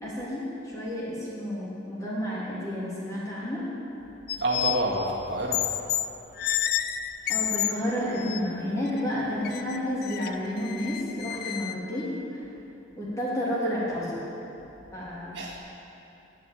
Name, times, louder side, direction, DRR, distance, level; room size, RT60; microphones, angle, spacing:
voice 1, 0.0-3.7 7.3-12.4 13.0-14.2 14.9-15.4, equal, 20° left, -8 dB, 3.1 m, -31 dB
sound 1, 4.3-4.8 5.5-6.1 6.4-7.7 8.2-8.4 8.9-9.0 9.4-11.7, left 11 dB, 55° left, 0.4 m, -30 dB
voice 2, 4.4-5.6 15.3-15.6, right 1 dB, 65° right, -3 dB, 1.8 m, -28 dB
10.5 x 8.3 x 8.5 m, 3.0 s
head